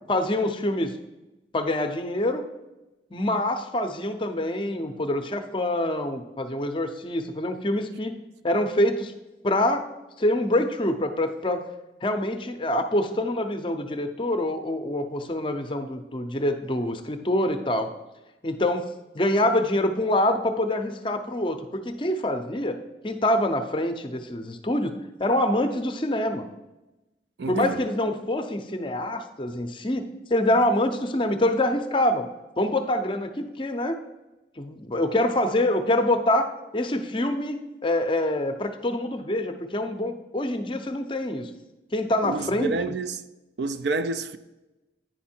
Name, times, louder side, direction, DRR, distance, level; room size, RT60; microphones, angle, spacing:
voice 1, 0.1-0.9 1.5-2.5 3.1-8.1 8.4-9.1 9.4-9.9 10.2-11.6 12.0-17.9 18.4-18.9 19.1-22.8 23.0-26.5 27.5-32.3 32.6-34.0 34.6-41.5 41.9-42.7, left 1 dB, 25° left, 0.5 m, -25 dB
voice 2, 27.4-27.8 42.2-43.2 43.6-44.4, right 3 dB, 70° right, 0.4 m, -29 dB
9.2 x 5.4 x 4.4 m
head